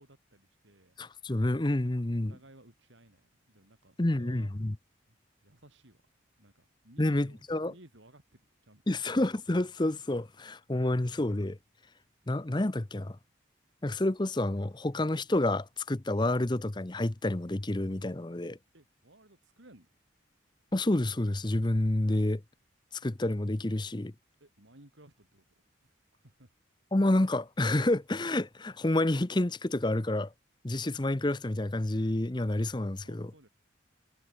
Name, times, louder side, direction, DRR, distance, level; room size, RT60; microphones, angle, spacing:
voice 1, 0.0-1.0 1.8-4.5 5.1-5.2 5.4-6.0 6.4-9.0 18.7-19.9 24.4-25.4 25.8-25.9 26.2-26.5 33.0-33.5, right 1 dB, 75° right, 4.2 m, -58 dB
voice 2, 1.0-2.4 4.0-4.7 7.0-7.7 8.9-11.6 12.3-13.2 13.8-18.6 20.7-22.4 23.0-24.1 26.9-30.3 30.6-33.3, left 1 dB, 25° left, 0.7 m, -29 dB
head